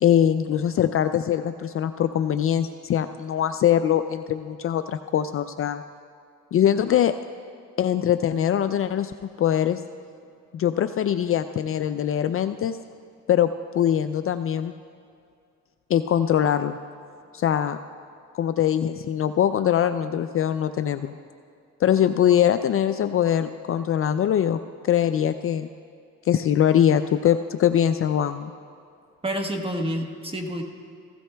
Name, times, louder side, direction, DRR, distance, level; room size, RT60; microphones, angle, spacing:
voice 1, 0.0-5.8 6.5-7.1 7.8-9.1 9.4-9.8 10.5-12.8 13.3-13.5 13.7-14.7 15.9-16.8 17.3-17.8 18.3-21.1 21.8-25.7 26.3-28.5, left 10 dB, 45° left, 10 dB, 0.4 m, -22 dB
voice 2, 29.2-30.6, equal, 20° right, 4 dB, 1.2 m, -28 dB
16.0 x 15.5 x 2.3 m, 2.4 s
cardioid pair, 90°, 30 cm